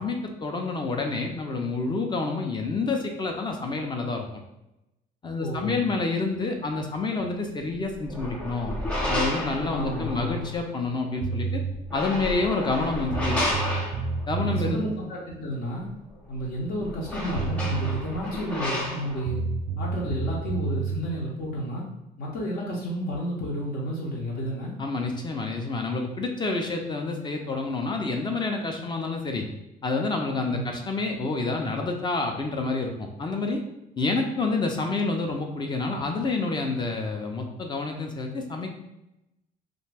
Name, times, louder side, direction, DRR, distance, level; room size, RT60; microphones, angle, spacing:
voice 1, 0.0-4.4 5.2-8.8 9.1-11.6 11.9-13.4 14.3-14.9 24.8-29.5 29.8-33.6 34.0-38.7, left 3 dB, 25° left, 3 dB, 0.4 m, -28 dB
voice 2, 5.4-5.8 9.7-10.4 14.3-15.9 16.3-19.4 19.8-21.8 22.2-24.7 30.5-30.8, equal, 65° left, -4 dB, 0.7 m, -31 dB
sound 1, 7.9-10.6 11.7-14.4 16.3-16.4 16.7-19.2, left 1 dB, 5° left, 0.7 m, -31 dB
sound 2, 11.2-11.7 12.7-12.8 13.1-14.8 17.0-17.1 17.3-18.0 19.2-21.0, right 5 dB, 75° right, 0.4 m, -29 dB
2.5 x 2.2 x 3.2 m, 0.90 s
cardioid pair, 110°, 17 cm